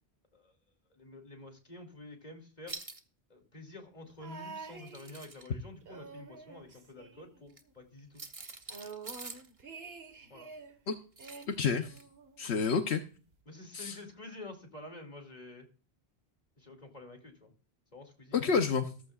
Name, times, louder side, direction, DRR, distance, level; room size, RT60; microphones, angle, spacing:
voice 1, 0.9-2.8 3.3-8.3 10.3-10.5 13.5-15.7 16.6-17.5 17.9-18.6, left 2 dB, 40° left, 4 dB, 2.8 m, -49 dB
sound 1, 2.7-3.0 4.7-5.5 7.5-7.6 8.2-9.5 11.2-11.6 12.0-12.1, right 2 dB, 30° right, 1.1 m, -45 dB
sound 2, 4.2-5.5 5.8-7.7 8.0-8.1 8.4-10.8 11.2-12.4 13.3-13.4, right 4 dB, 70° right, 1.7 m, -48 dB
voice 2, 11.5-12.0 12.4-13.0 13.7-14.0 18.3-18.9, left 5 dB, 80° left, 6 dB, 1.2 m, -29 dB
14.5 x 14.5 x 2.4 m, 0.37 s
omnidirectional pair, 1.1 m